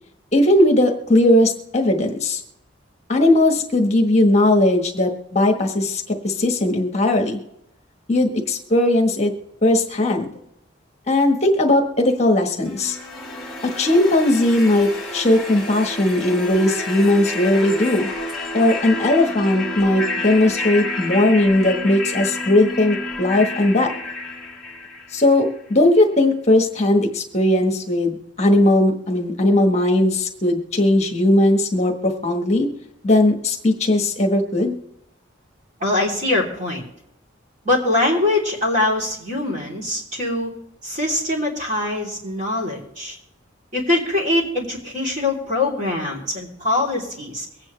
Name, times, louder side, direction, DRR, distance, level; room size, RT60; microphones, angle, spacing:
voice 1, 0.3-2.4 3.1-7.4 8.1-9.3 9.6-10.3 11.1-13.0 13.6-18.1 18.5-23.9 25.1-32.7 33.0-34.8, left 1 dB, 35° left, 2 dB, 1.3 m, -18 dB
sound 1, 12.7-25.6, left 2 dB, ahead, 1.7 m, -30 dB
voice 2, 35.8-36.8 37.6-40.5 40.8-43.2 43.7-47.4, left 2 dB, 40° right, -2 dB, 3.3 m, -23 dB
23.5 x 9.0 x 3.2 m, 0.83 s
head